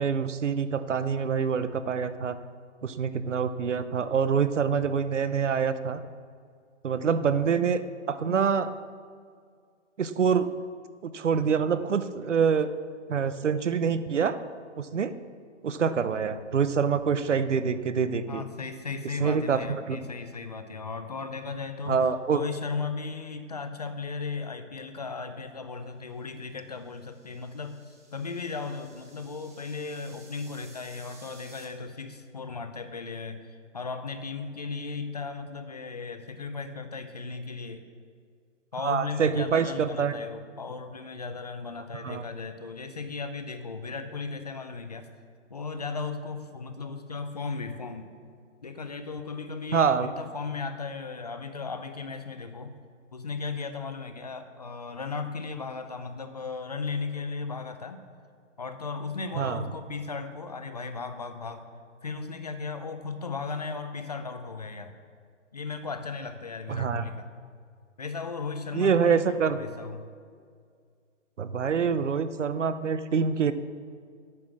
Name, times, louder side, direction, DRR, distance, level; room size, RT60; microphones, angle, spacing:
voice 1, 0.0-2.4 2.8-6.0 6.8-7.8 8.1-8.7 10.0-10.5 11.0-12.7 13.1-14.4 14.8-15.2 15.6-18.4 19.2-20.0 21.9-22.4 38.8-40.1 42.0-42.2 49.7-50.1 59.4-59.6 66.7-67.0 68.7-69.6 71.4-73.5, right 6 dB, 70° right, 12 dB, 0.9 m, -26 dB
voice 2, 18.3-37.8 38.7-45.1 45.5-48.1 48.6-52.7 53.1-58.0 58.6-61.7 62.0-64.9 65.5-67.3 68.0-70.1, left 4 dB, 35° left, 8 dB, 0.6 m, -36 dB
sound 1, 26.5-31.7, right 2 dB, 15° right, 0.7 m, -55 dB
11.0 x 9.0 x 6.2 m, 2.1 s
hypercardioid pair, 170°, 37 cm